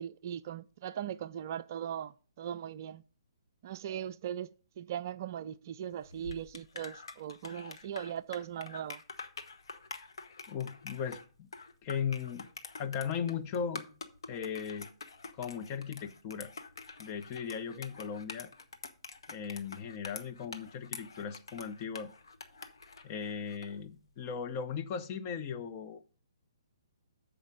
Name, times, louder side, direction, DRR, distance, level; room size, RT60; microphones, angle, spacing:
voice 1, 0.0-3.0 3.6-9.0, right 10 dB, 40° right, 0.3 m, -39 dB
sound 1, 6.0-23.8, left 4 dB, 60° left, 1.0 m, -47 dB
voice 2, 10.5-11.5 11.8-12.5 12.8-13.8 14.3-14.9 15.4-16.5 17.0-18.5 19.3-22.1 23.0-26.0, left 7 dB, 30° left, 0.6 m, -37 dB
7.2 x 4.9 x 6.3 m
figure-of-eight pair, 125°, 3 cm